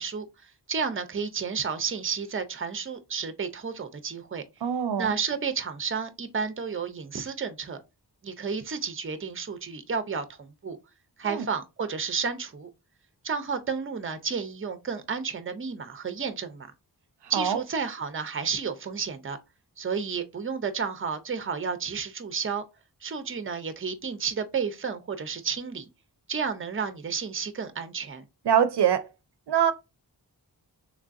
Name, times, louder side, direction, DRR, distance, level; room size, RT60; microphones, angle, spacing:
voice 1, 0.0-4.4 5.0-7.8 8.2-10.8 11.2-12.7 13.2-16.7 17.3-19.4 19.8-22.6 23.0-25.9 26.3-28.2, right 6 dB, 30° right, 0.6 m, -31 dB
voice 2, 4.6-5.1 11.2-11.4 17.3-17.6 28.5-29.1 29.5-29.7, right 9 dB, 80° right, 0.5 m, -23 dB
3.5 x 3.3 x 2.5 m
wide cardioid pair, 60°, 40 cm